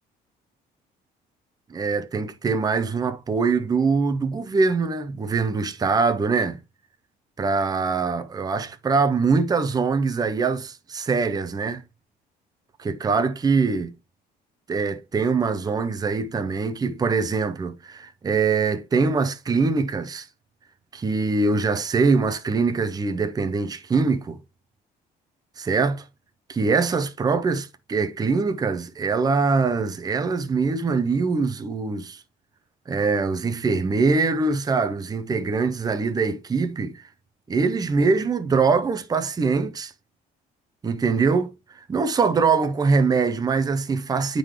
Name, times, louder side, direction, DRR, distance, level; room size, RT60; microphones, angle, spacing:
voice 1, 1.7-6.6 7.4-11.8 12.8-13.9 14.7-20.3 20.9-24.4 25.6-26.0 26.5-32.2 32.9-37.0 37.5-39.9 40.8-41.5 41.9-44.4, right 4 dB, 20° right, 0.6 m, -23 dB
8.7 x 3.8 x 3.2 m
cardioid pair, 110°, 17 cm